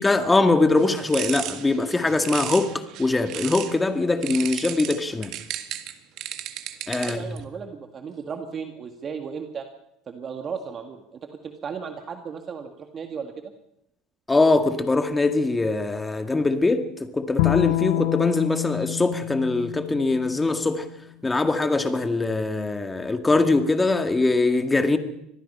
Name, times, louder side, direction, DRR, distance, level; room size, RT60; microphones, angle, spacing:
voice 1, 0.0-2.7 3.0-5.3 6.9-7.4 14.3-16.9 17.1-20.9 21.2-25.0, left 3 dB, 15° left, 2.0 m, -22 dB
sound 1, 0.8-3.8 4.2-7.4, right 12 dB, 60° right, 1.9 m, -34 dB
voice 2, 7.0-9.7 10.1-13.5, right 6 dB, 35° right, 1.9 m, -35 dB
Bowed string instrument, 17.4-20.7, left 21 dB, 85° left, 0.7 m, -27 dB
25.0 x 18.5 x 5.6 m
supercardioid pair, 115°, 0 cm